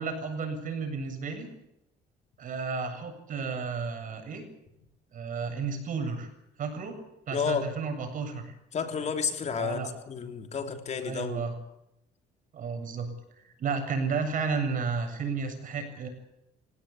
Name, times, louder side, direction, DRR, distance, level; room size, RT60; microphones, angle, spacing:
voice 1, 0.0-1.5 2.4-4.5 5.1-6.3 6.6-7.0 7.3-8.6 9.5-9.9 11.0-11.6 12.5-13.1 13.4-16.1, right 5 dB, 50° right, 7 dB, 7.7 m, -32 dB
voice 2, 7.3-7.7 8.7-11.4, left 6 dB, 40° left, 6 dB, 3.6 m, -31 dB
27.5 x 17.5 x 8.7 m, 0.82 s
cardioid pair, 110°, 17 cm